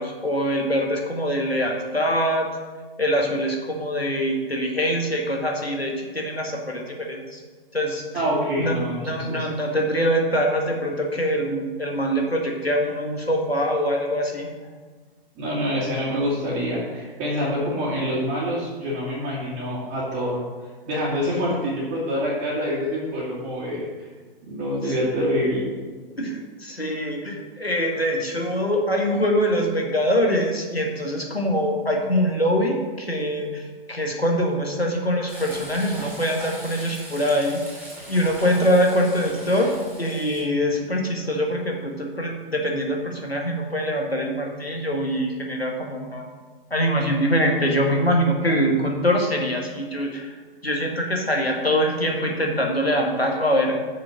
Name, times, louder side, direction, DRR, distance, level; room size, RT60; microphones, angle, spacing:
voice 1, 0.0-2.5 3.0-7.4 7.7-8.0 8.6-14.5 24.8-25.0 26.2-37.6 38.1-46.3 46.7-50.4 50.6-53.7, equal, 90° left, 1 dB, 1.8 m, -24 dB
voice 2, 8.1-9.0 9.3-9.4 15.4-24.1 24.5-25.7, equal, 25° right, -8 dB, 2.2 m, -26 dB
Frying (food), 35.3-40.4, right 1 dB, 5° right, 2.5 m, -40 dB
7.1 x 6.7 x 5.9 m, 1.4 s
figure-of-eight pair, 115°, 30 cm